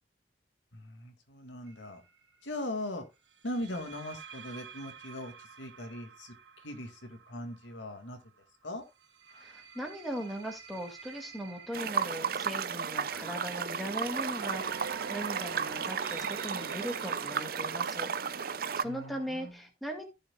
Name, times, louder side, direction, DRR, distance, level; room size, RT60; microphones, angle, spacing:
voice 1, 0.7-2.0 2.4-3.1 3.4-6.3 6.6-8.2 8.6-8.8 18.8-19.5, left 1 dB, 85° left, 2.1 m, -40 dB
sound 1, 1.7-2.0 3.5-8.2 9.0-19.5, right 6 dB, 85° right, 1.6 m, -47 dB
voice 2, 9.3-20.1, equal, ahead, 1.9 m, -39 dB
sound 2, 11.7-18.8, right 6 dB, 50° right, 0.5 m, -34 dB
15.0 x 6.6 x 2.3 m
head